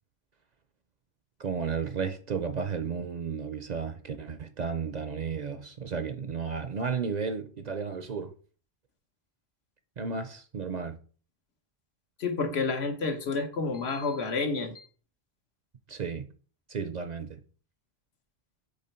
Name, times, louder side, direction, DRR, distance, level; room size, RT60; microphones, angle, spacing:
voice 1, 1.4-8.3 10.0-11.0 15.9-16.3 16.7-17.4, right 5 dB, 50° right, 0.6 m, -33 dB
voice 2, 12.2-14.9, left 4 dB, 80° left, 1.3 m, -30 dB
8.0 x 3.3 x 4.3 m
omnidirectional pair, 1.1 m